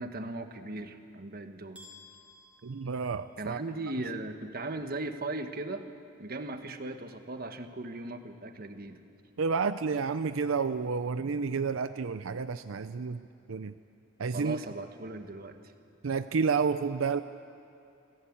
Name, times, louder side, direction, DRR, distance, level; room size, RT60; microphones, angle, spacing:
voice 1, 0.0-1.8 3.4-5.8 6.2-9.0 14.3-15.7, right 2 dB, 50° right, 8 dB, 1.3 m, -38 dB
sound 1, 1.7-3.7, left 2 dB, 5° right, 3.2 m, -55 dB
voice 2, 2.6-3.6 9.4-13.7 14.2-14.6 16.0-17.2, right 5 dB, 85° right, 11 dB, 0.5 m, -30 dB
27.0 x 16.0 x 8.8 m, 2.7 s
head